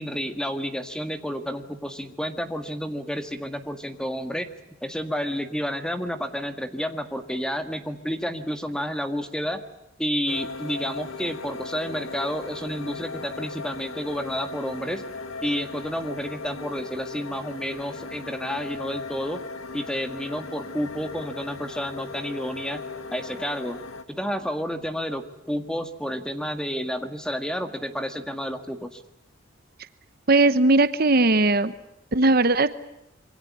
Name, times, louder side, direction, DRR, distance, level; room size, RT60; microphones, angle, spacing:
voice 1, 0.0-4.5 4.8-9.6 10.0-15.0 15.4-19.4 19.7-22.8 23.1-23.8 24.1-29.0, equal, 5° left, 8 dB, 1.8 m, -30 dB
sound 1, 10.3-24.0, left 3 dB, 80° left, 1.9 m, -37 dB
voice 2, 30.3-31.7 32.1-32.7, right 2 dB, 45° right, 12 dB, 1.0 m, -18 dB
26.0 x 23.5 x 8.5 m, 0.86 s
head